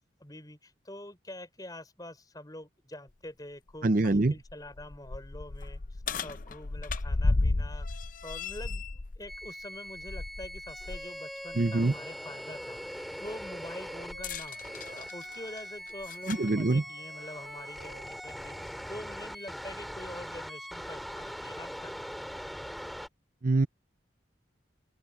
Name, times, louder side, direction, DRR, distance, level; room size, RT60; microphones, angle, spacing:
voice 1, 0.2-22.1, left 1 dB, 20° left, 5.8 m, -46 dB
sound 1, 3.1-3.2 3.7-3.8 4.4-11.1 11.5-11.7 14.1-16.5 17.5-17.6 18.4-18.5, left 2 dB, 45° left, 0.6 m, -34 dB
voice 2, 3.8-4.3 11.6-11.9 16.3-16.8 23.4-23.7, right 2 dB, 45° right, 0.6 m, -24 dB
sound 2, 9.3-23.1, equal, ahead, 2.8 m, -42 dB
Wind instrument woodwind instrument, 13.4-18.7, right 2 dB, 60° right, 5.9 m, -55 dB
open air
head